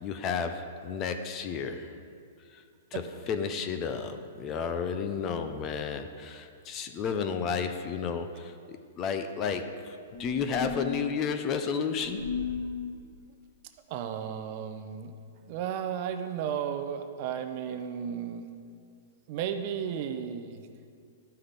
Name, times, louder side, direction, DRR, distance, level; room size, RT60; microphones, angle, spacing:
voice 1, 0.0-1.9 2.5-2.6 2.9-12.2, left 6 dB, 25° left, 8 dB, 0.5 m, -32 dB
sound 1, 10.1-10.9 12.0-12.7, left 5 dB, 50° left, 2.3 m, -34 dB
voice 2, 13.9-15.1 15.5-18.5 19.3-20.7, right 8 dB, 40° right, 8 dB, 0.6 m, -34 dB
13.0 x 5.7 x 3.4 m, 2.3 s
hypercardioid pair, 150°, 0 cm